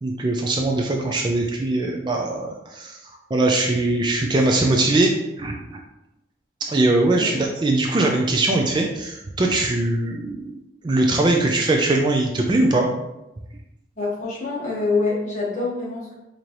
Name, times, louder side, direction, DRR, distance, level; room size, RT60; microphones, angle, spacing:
voice 1, 0.0-3.0 3.3-5.8 6.7-10.6 10.8-12.9, right 2 dB, 25° right, 1 dB, 0.3 m, -21 dB
voice 2, 7.0-7.4 14.0-16.1, left 3 dB, 40° left, -5 dB, 1.2 m, -26 dB
4.6 x 2.6 x 2.9 m, 0.94 s
head